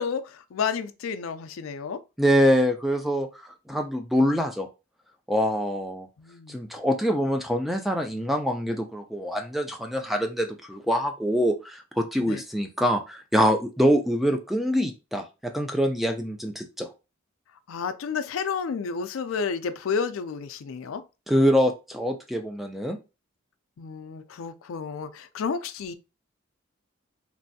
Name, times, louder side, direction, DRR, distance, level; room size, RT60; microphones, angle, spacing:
voice 1, 0.0-2.0 6.2-6.6 12.2-12.4 17.7-21.0 23.8-25.9, left 6 dB, 80° left, 0.4 m, -31 dB
voice 2, 2.2-3.3 3.7-4.7 5.3-6.1 6.5-16.9 21.3-23.0, equal, ahead, 0.3 m, -24 dB
3.1 x 2.6 x 2.6 m
head